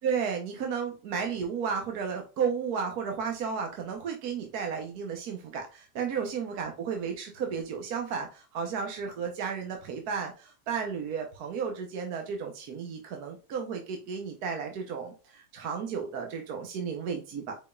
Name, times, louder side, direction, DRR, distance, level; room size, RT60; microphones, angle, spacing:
voice 1, 0.0-17.5, right 6 dB, 65° right, 3 dB, 1.2 m, -33 dB
5.1 x 4.6 x 2.3 m, 0.34 s
omnidirectional pair, 1.9 m